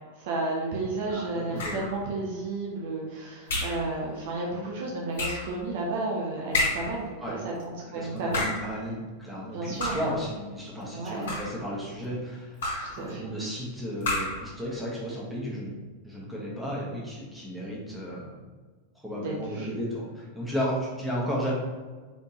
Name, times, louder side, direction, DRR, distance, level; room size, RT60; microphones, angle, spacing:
voice 1, 0.1-8.5 9.5-10.0 10.9-11.3 12.8-13.3 19.2-19.8, right 2 dB, 50° right, -2 dB, 0.7 m, -32 dB
voice 2, 1.1-1.8 7.2-7.4 7.9-12.6 13.0-18.3 18.9-21.5, equal, 5° right, -6 dB, 1.3 m, -34 dB
sound 1, 1.6-2.0 3.5-3.9 5.2-5.5 6.5-7.0 8.2-8.7 9.8-10.2 11.1-11.7 12.6-13.0 14.0-14.5, left 2 dB, 60° left, 1.1 m, -30 dB
4.1 x 3.4 x 2.9 m, 1.4 s
figure-of-eight pair, 90°, 0 cm